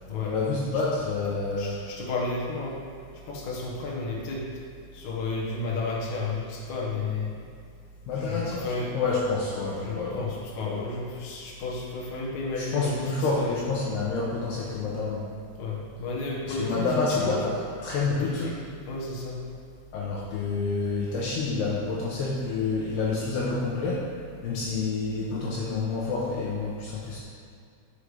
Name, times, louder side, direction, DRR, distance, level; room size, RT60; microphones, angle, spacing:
voice 1, 0.2-1.8 8.1-8.7 8.9-10.3 12.6-15.3 16.6-18.5 19.9-24.1 24.4-27.2, left 4 dB, 75° left, -4 dB, 2.7 m, -28 dB
voice 2, 1.6-2.8 3.3-4.4 4.9-7.3 8.1-8.9 9.7-13.6 15.6-17.4 18.2-18.6 18.9-19.4, left 3 dB, 55° left, -4 dB, 2.3 m, -32 dB
13.0 x 7.5 x 3.5 m, 2.2 s
omnidirectional pair, 5.3 m